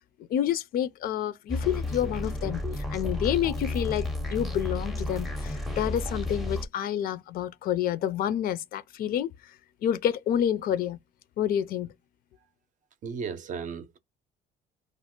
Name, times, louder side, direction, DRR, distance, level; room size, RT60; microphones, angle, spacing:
voice 1, 0.3-9.3 9.8-11.0 11.4-11.9, left 10 dB, 60° left, 0.4 m, -28 dB
sound 1, 1.5-6.7, left 2 dB, ahead, 0.5 m, -32 dB
voice 2, 13.0-14.0, right 6 dB, 50° right, 0.5 m, -35 dB
2.4 x 2.1 x 3.6 m
cardioid pair, 110°, 17 cm